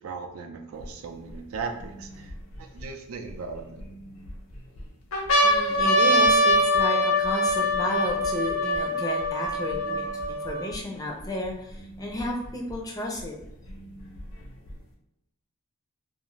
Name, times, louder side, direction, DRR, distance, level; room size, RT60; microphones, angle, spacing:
voice 1, 0.0-2.3 2.6-3.9, right 4 dB, 90° right, 5 dB, 0.4 m, -37 dB
sound 1, 0.8-0.9 1.6-2.8 3.5-4.3 4.8-4.9 5.1-10.7 11.5-11.6 11.7-12.7 13.7-14.7, equal, 80° left, 0.6 m, -23 dB
voice 2, 5.4-13.3, left 1 dB, 15° left, 0 dB, 0.4 m, -33 dB
2.4 x 2.4 x 3.0 m, 0.83 s
head